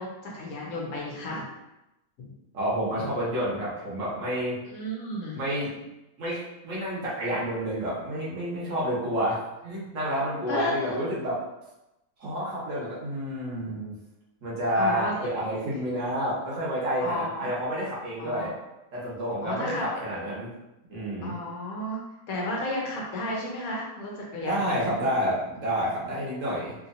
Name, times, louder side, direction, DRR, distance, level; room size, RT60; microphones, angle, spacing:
voice 1, 0.0-1.5 2.2-2.3 2.9-3.0 4.7-5.4 10.5-11.0 14.7-15.3 17.0-17.5 18.2-18.5 19.4-19.9 21.2-22.0 22.3-24.7, left 1 dB, 70° left, -2 dB, 1.2 m, -32 dB
voice 2, 2.5-4.6 5.3-5.7 6.2-11.4 12.2-13.9 14.4-18.5 18.9-20.5 20.9-21.3 24.4-26.7, equal, 60° right, -7 dB, 1.4 m, -29 dB
3.5 x 2.8 x 2.6 m, 0.93 s
omnidirectional pair, 1.6 m